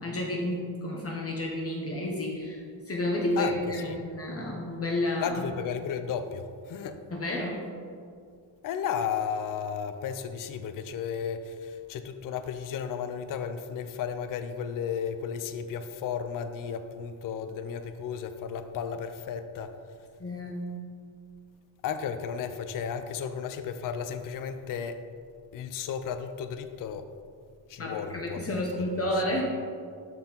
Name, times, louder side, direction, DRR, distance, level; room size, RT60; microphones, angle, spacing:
voice 1, 0.0-5.4 7.1-7.6 20.2-20.8 27.8-29.4, left 1 dB, 30° left, -2 dB, 0.8 m, -31 dB
voice 2, 5.2-7.0 8.6-19.8 21.8-25.1 25.5-27.1 27.7-28.6 29.3-29.4, left 7 dB, 45° left, 9 dB, 0.4 m, -34 dB
12.5 x 4.4 x 3.9 m, 2.2 s
cardioid pair, 175°, 50 cm